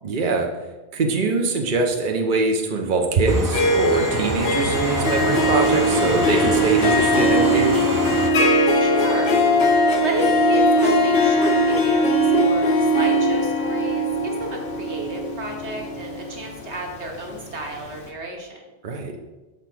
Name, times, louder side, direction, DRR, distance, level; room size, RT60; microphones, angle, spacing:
voice 1, 0.0-0.5 0.9-7.8 18.8-19.1, right 3 dB, 50° right, 2 dB, 0.9 m, -22 dB
Harp, 3.3-17.3, equal, 70° left, 1.1 m, -20 dB
sound 1, 3.3-8.3, right 2 dB, 25° right, 0.5 m, -27 dB
voice 2, 8.8-9.3 10.0-18.6, right 2 dB, 85° right, 0 dB, 1.6 m, -32 dB
6.8 x 4.5 x 6.0 m, 1.2 s
omnidirectional pair, 1.1 m